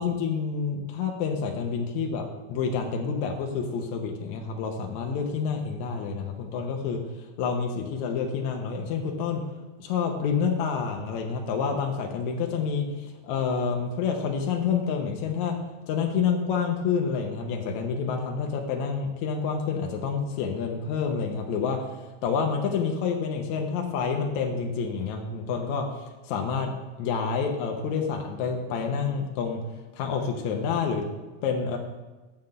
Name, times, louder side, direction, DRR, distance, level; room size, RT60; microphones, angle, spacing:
voice 1, 0.0-7.0 7.4-9.4 9.8-15.6 15.9-21.9 22.2-25.9 26.3-26.7 27.0-29.6 30.0-31.0 31.4-31.8, left 6 dB, 75° left, 3 dB, 2.0 m, -28 dB
7.2 x 5.8 x 6.6 m, 1.2 s
omnidirectional pair, 3.5 m